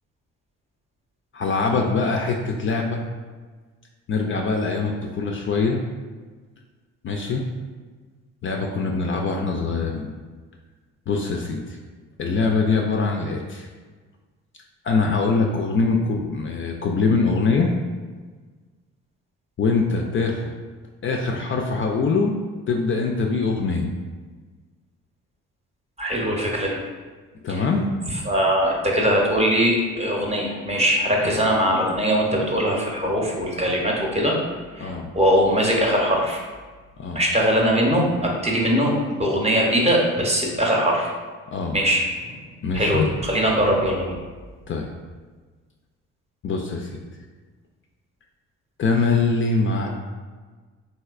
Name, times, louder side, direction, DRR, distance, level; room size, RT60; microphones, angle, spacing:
voice 1, 1.3-3.0 4.1-5.8 7.0-7.5 8.4-10.1 11.1-11.8 12.2-13.7 14.8-17.7 19.6-20.4 21.0-22.3 22.7-23.9 27.4-27.9 31.2-31.4 34.8-35.1 37.0-37.2 41.5-41.8 42.6-43.1 44.7-45.0 46.4-47.0 48.8-49.9, left 4 dB, 40° left, 1 dB, 0.4 m, -23 dB
voice 2, 26.0-26.8 27.5-27.6 28.3-34.4 34.7-36.4 37.1-41.1 41.7-42.4 42.7-44.1, equal, 20° right, -2 dB, 0.7 m, -21 dB
3.2 x 2.7 x 2.4 m, 1.4 s
supercardioid pair, 65°, 32 cm